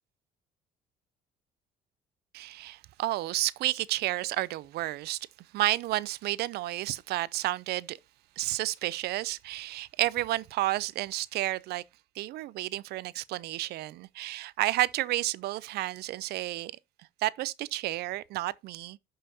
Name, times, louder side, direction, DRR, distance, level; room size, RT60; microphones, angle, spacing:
voice 1, 2.3-5.2 5.5-8.0 8.4-11.8 12.2-16.7 17.2-19.0, right 16 dB, 75° right, 0.4 m, -31 dB
12.0 x 5.6 x 2.7 m
cardioid pair, 110°, 17 cm